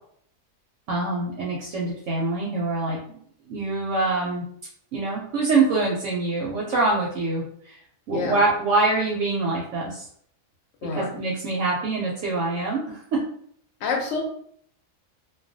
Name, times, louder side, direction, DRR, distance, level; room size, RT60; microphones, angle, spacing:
voice 1, 0.9-3.0 3.5-4.4 4.9-7.8 8.1-10.1 10.9-13.2, right 3 dB, 70° right, -3 dB, 0.8 m, -25 dB
voice 2, 8.1-8.4 10.8-11.1 13.8-14.2, left 4 dB, 65° left, 2 dB, 0.8 m, -27 dB
2.3 x 2.2 x 2.6 m, 0.63 s
omnidirectional pair, 1.4 m